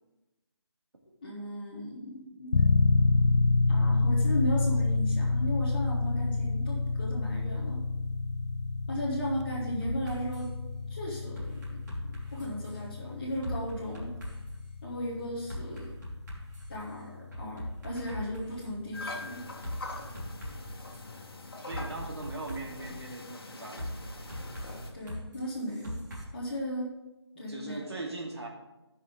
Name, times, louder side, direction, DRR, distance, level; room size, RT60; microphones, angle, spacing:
voice 1, 1.2-2.6 3.7-7.8 8.9-10.5 10.9-14.1 14.8-15.9 16.7-19.4 24.9-26.0 26.3-26.9 27.4-27.9, equal, 20° left, -8 dB, 1.2 m, -36 dB
sound 1, 2.5-19.3, left 3 dB, 80° left, 0.4 m, -29 dB
sound 2, 9.8-10.5 11.3-12.8 13.4-14.6 15.5-16.8 17.3-18.7 19.6-21.0 21.7-22.9 23.8-26.2, equal, 45° right, 3.5 m, -40 dB
sound 3, 18.9-24.9, left 2 dB, 55° left, 1.6 m, -43 dB
voice 2, 20.0-20.4 21.6-24.2 27.3-28.5, right 2 dB, 65° right, 0 dB, 2.4 m, -41 dB
14.5 x 5.8 x 3.7 m, 1.0 s
figure-of-eight pair, 180°, 15 cm